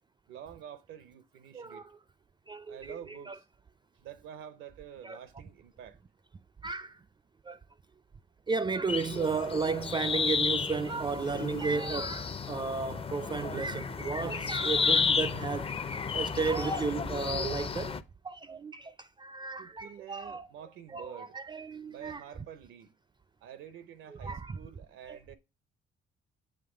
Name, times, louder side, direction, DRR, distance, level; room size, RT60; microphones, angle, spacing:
voice 1, 0.3-1.8 2.7-3.5 3.9-6.0 19.6-21.4 21.9-22.9 23.4-25.4, right 9 dB, 85° right, 0.8 m, -48 dB
voice 2, 1.5-2.0 2.5-3.4 5.0-5.2 6.6-7.0 7.4-7.6 8.5-15.8 16.1-18.0 18.2-20.5 20.9-22.2 24.1-24.6 25.1-25.4, right 4 dB, 25° right, 0.4 m, -34 dB
sound 1, 8.9-18.0, left 5 dB, 30° left, 0.6 m, -32 dB
7.6 x 3.1 x 4.9 m
cardioid pair, 90°, 20 cm